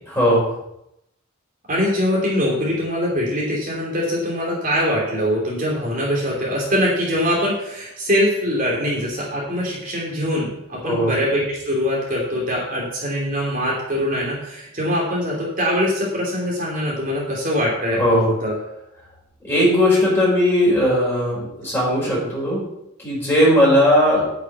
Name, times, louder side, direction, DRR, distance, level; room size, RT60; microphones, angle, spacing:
voice 1, 0.1-0.5 10.8-11.1 18.0-18.3 19.4-22.6 23.0-24.3, equal, 10° left, -6 dB, 5.1 m, -18 dB
voice 2, 1.7-18.5, equal, 40° right, -4 dB, 2.9 m, -23 dB
9.2 x 6.5 x 7.4 m, 0.84 s
head